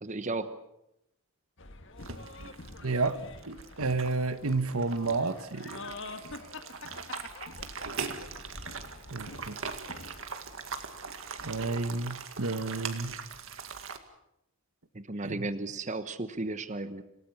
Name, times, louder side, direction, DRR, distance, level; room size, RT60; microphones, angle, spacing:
voice 1, 0.0-0.5 14.9-17.0, right 2 dB, 35° right, 1.1 m, -34 dB
sound 1, 1.6-10.2, left 2 dB, 60° left, 1.7 m, -46 dB
sound 2, 2.0-14.0, right 5 dB, 65° right, 2.0 m, -41 dB
voice 2, 2.8-3.2 3.4-5.8 9.1-9.7 11.4-13.2 15.2-15.5, right 3 dB, 85° right, 1.4 m, -31 dB
27.0 x 18.0 x 7.2 m
head